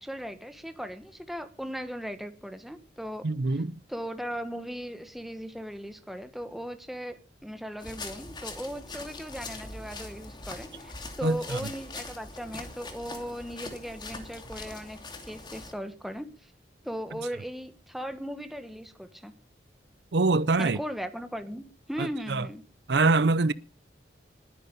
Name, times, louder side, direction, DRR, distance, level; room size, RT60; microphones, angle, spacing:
voice 1, 0.0-3.6 3.9-10.9 11.2-16.5 16.8-19.3 20.6-22.6, equal, ahead, 1.4 m, -38 dB
voice 2, 3.2-3.8 11.2-11.6 20.1-20.8 22.0-22.5 22.9-23.5, right 3 dB, 70° right, 0.6 m, -24 dB
sound 1, 7.8-15.7, left 3 dB, 25° left, 2.5 m, -42 dB
20.5 x 9.6 x 5.4 m
head